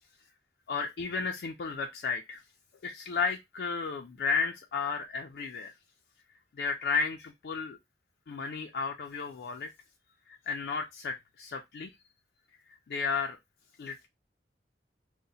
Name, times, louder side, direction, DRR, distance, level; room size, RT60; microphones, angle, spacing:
voice 1, 0.7-2.4 2.8-5.7 6.6-7.8 8.3-9.7 10.3-11.9 12.9-13.4 13.8-14.1, left 5 dB, 65° left, 3 dB, 0.3 m, -33 dB
2.7 x 2.1 x 3.9 m, 0.20 s
head